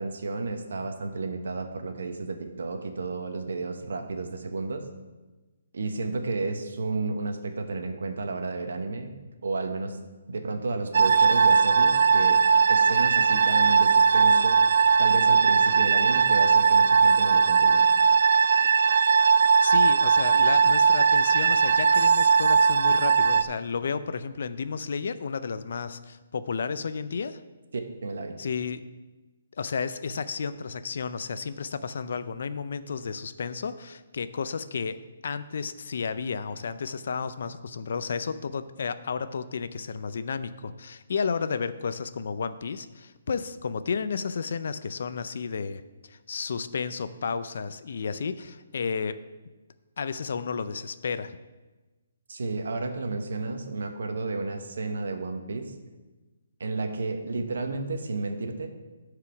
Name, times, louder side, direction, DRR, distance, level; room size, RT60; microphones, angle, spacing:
voice 1, 0.0-4.8 5.7-9.1 9.4-10.0 10.3-12.4 12.7-14.6 15.0-17.9 27.7-28.4 52.3-55.7 56.6-58.7, right 3 dB, 75° right, 5 dB, 1.2 m, -32 dB
sound 1, 10.9-23.4, right 5 dB, 55° right, 0.4 m, -19 dB
voice 2, 19.6-27.4 28.4-28.8 29.6-35.0 35.2-45.8 46.1-49.2 50.0-51.4, left 5 dB, 50° left, 13 dB, 0.5 m, -32 dB
11.5 x 4.9 x 5.8 m, 1.2 s
hypercardioid pair, 175°, 0 cm